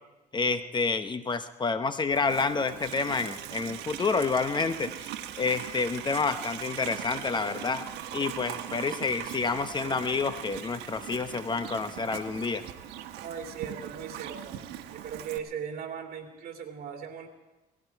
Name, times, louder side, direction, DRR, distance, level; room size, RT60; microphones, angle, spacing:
voice 1, 0.3-5.1 5.4-7.9 8.1-12.6, left 4 dB, 25° left, 10 dB, 0.9 m, -29 dB
Livestock farm animals working animals, 2.1-15.4, right 11 dB, 90° right, 1.1 m, -40 dB
voice 2, 13.2-14.6 14.9-17.3, right 7 dB, 60° right, 3 dB, 2.7 m, -38 dB
18.5 x 16.0 x 4.7 m, 1.1 s
cardioid pair, 110°, 17 cm